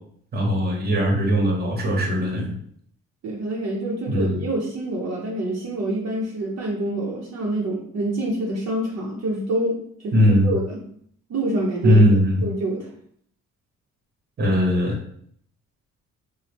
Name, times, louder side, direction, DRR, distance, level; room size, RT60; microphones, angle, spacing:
voice 1, 0.3-2.5 4.1-4.4 10.1-10.5 11.8-12.4 14.4-15.0, equal, 30° right, 1 dB, 0.9 m, -19 dB
voice 2, 3.2-9.8 10.0-10.2 10.4-10.8 11.3-12.9, right 1 dB, 55° right, -2 dB, 0.7 m, -26 dB
3.0 x 2.1 x 3.3 m, 0.64 s
cardioid pair, 90°, 30 cm